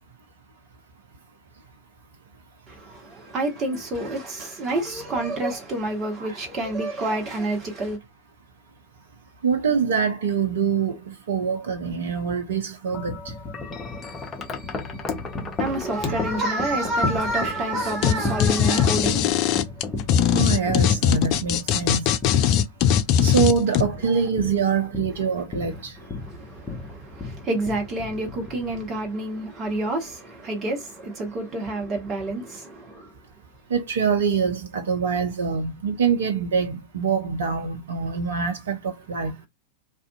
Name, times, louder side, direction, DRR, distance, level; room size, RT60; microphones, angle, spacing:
voice 1, 2.7-8.0 15.6-19.2 25.7-33.1, right 1 dB, 25° right, 1.1 m, -28 dB
voice 2, 9.4-13.2 20.3-22.0 23.2-25.9 33.7-39.4, right 6 dB, 60° right, 0.6 m, -24 dB
Wind chime, 12.9-29.1, left 3 dB, 20° left, 0.7 m, -34 dB
sound 1, 18.0-18.1 18.4-23.8, left 9 dB, 40° left, 0.3 m, -20 dB
2.5 x 2.4 x 2.3 m
figure-of-eight pair, 90°, 0 cm